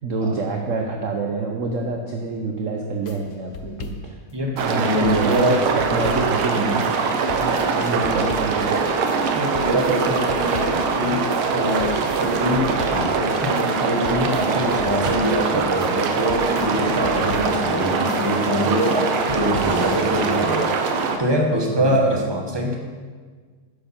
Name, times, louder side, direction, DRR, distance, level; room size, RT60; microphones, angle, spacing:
voice 1, 0.0-4.2 4.5-6.9 7.4-8.9 21.7-22.0, right 3 dB, 50° right, 2 dB, 1.0 m, -27 dB
sound 1, 3.0-20.5, left 6 dB, 60° left, 1.0 m, -38 dB
voice 2, 4.3-5.6 5.9-6.0 9.3-20.7 21.2-22.8, equal, 15° right, 0 dB, 1.4 m, -24 dB
sound 2, 4.6-21.2, right 4 dB, 80° right, 1.9 m, -23 dB
13.0 x 10.0 x 4.5 m, 1.5 s
omnidirectional pair, 2.4 m